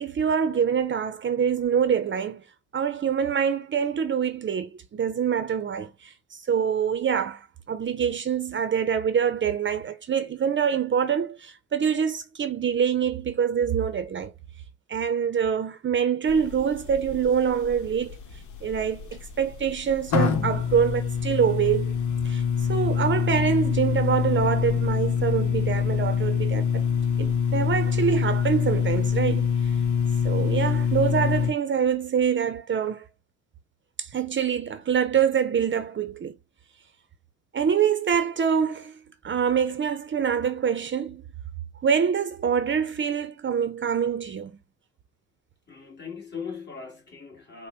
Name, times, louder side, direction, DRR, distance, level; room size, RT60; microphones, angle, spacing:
voice 1, 0.0-2.4 2.7-14.3 14.9-18.2 18.6-21.9 22.2-22.4 22.7-26.9 27.2-29.5 30.2-33.1 34.0-36.4 37.5-41.2 41.8-44.5, right 7 dB, 40° right, 0.7 m, -25 dB
sound 1, 16.3-31.5, left 7 dB, 75° left, 0.9 m, -25 dB
voice 2, 45.7-47.7, left 6 dB, 35° left, 2.0 m, -39 dB
5.2 x 2.2 x 4.4 m
cardioid pair, 90°, 30 cm